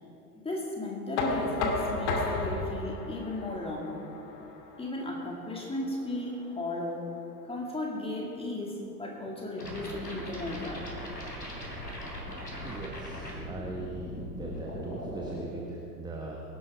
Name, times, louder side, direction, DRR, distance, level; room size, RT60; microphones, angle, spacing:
voice 1, 0.4-4.1 4.8-7.1 7.4-10.9, left 2 dB, 10° left, -1 dB, 2.1 m, -35 dB
Knock, 1.2-7.0, left 2 dB, 45° left, 2.1 m, -34 dB
sound 1, 9.6-15.4, equal, 85° left, 3.2 m, -39 dB
voice 2, 12.6-14.1 14.4-16.4, right 3 dB, 10° right, -1 dB, 1.3 m, -40 dB
22.5 x 12.0 x 3.5 m, 2.7 s
figure-of-eight pair, 90°, 48 cm